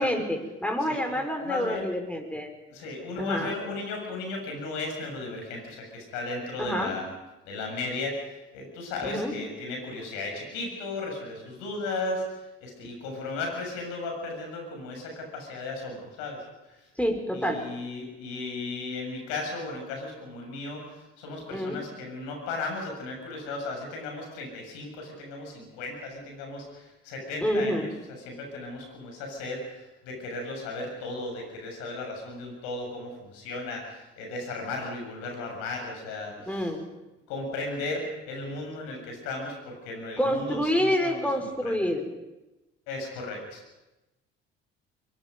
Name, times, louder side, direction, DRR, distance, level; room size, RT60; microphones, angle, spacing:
voice 1, 0.0-2.5 3.2-3.5 6.6-7.0 9.0-9.4 17.0-17.6 21.5-21.8 27.4-27.9 36.5-36.8 40.2-42.1, equal, 5° left, 4 dB, 5.2 m, -27 dB
voice 2, 0.9-1.9 2.7-7.1 7.5-16.8 17.3-27.9 28.3-36.7 37.3-41.8 42.9-43.6, left 2 dB, 75° left, 2 dB, 7.1 m, -35 dB
23.5 x 23.0 x 5.3 m, 1.0 s
hypercardioid pair, 60°, 30 cm